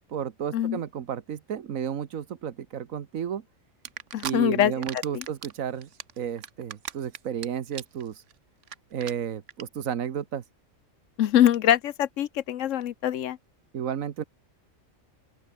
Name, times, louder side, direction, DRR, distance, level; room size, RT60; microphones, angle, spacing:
voice 1, 0.1-3.4 4.2-5.9 6.2-8.2 8.9-10.4 13.7-14.2, right 8 dB, 85° right, 1.5 m, -32 dB
sound 1, 3.9-4.3 4.7-5.5 5.8-7.5 7.7-8.0 8.3-8.4 8.6-8.8 9.0-9.1 9.5-9.6, right 9 dB, 65° right, 1.3 m, -36 dB
voice 2, 4.1-5.2 11.2-13.4, left 11 dB, 75° left, 1.0 m, -24 dB
open air
omnidirectional pair, 1.4 m